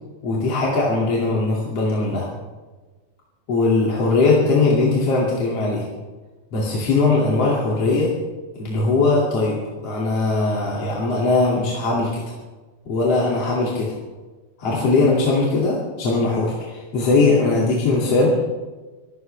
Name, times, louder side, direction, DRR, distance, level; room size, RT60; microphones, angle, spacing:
voice 1, 0.2-2.3 3.5-5.9 6.5-8.1 8.6-12.2 12.8-14.0 14.6-18.4, left 3 dB, 45° left, -5 dB, 3.3 m, -20 dB
24.5 x 14.5 x 3.4 m, 1.3 s
omnidirectional pair, 4.3 m